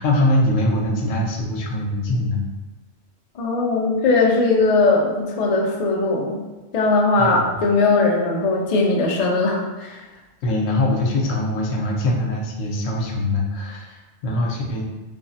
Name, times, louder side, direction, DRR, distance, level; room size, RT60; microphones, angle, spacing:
voice 1, 0.0-2.4 7.2-7.4 10.4-14.8, left 1 dB, 85° left, -1 dB, 1.0 m, -22 dB
voice 2, 3.4-6.4 6.7-10.0, left 3 dB, 70° left, -1 dB, 0.3 m, -19 dB
3.3 x 2.0 x 2.6 m, 1.2 s
omnidirectional pair, 1.3 m